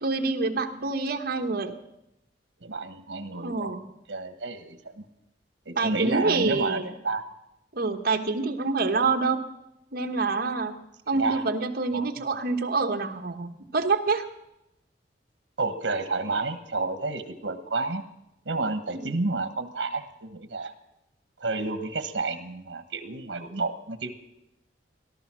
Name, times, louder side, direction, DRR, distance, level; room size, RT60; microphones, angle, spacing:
voice 1, 0.0-1.8 3.4-3.8 5.8-6.9 7.7-9.4 9.9-10.8 11.1-14.3 18.9-19.1, right 3 dB, 55° right, 6 dB, 1.2 m, -26 dB
voice 2, 2.6-3.7 4.1-5.0 5.7-7.3 9.0-9.2 11.1-11.4 11.9-12.1 15.6-18.0 18.4-20.7 21.4-24.2, right 3 dB, 75° right, 10 dB, 1.2 m, -30 dB
18.0 x 12.0 x 6.2 m, 0.87 s
head